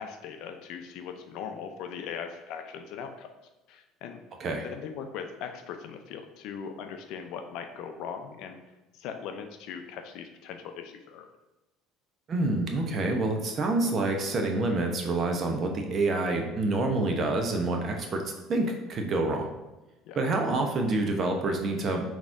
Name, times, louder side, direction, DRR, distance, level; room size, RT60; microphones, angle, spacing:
voice 1, 0.0-3.3 3.7-4.2 4.6-8.6 8.9-11.3 18.0-18.2 20.0-20.2, left 7 dB, 70° left, 6 dB, 0.5 m, -39 dB
voice 2, 12.3-18.2 18.5-19.6 20.2-22.1, right 2 dB, 45° right, 3 dB, 0.8 m, -27 dB
4.0 x 3.0 x 3.7 m, 1.1 s
supercardioid pair, 80°, 0 cm